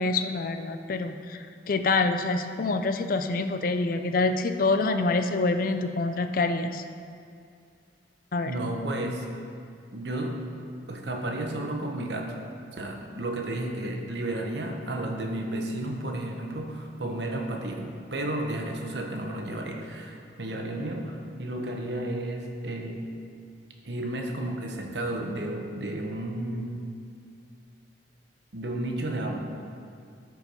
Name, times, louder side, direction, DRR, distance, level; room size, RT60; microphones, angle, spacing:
voice 1, 0.0-6.8 8.3-8.5, left 3 dB, 50° left, 8 dB, 0.5 m, -26 dB
voice 2, 8.4-9.3 9.9-10.4 10.9-12.3 12.7-23.0 23.8-26.8 28.5-29.4, right 1 dB, 70° right, 2 dB, 1.1 m, -32 dB
13.5 x 4.7 x 5.3 m, 2.3 s
head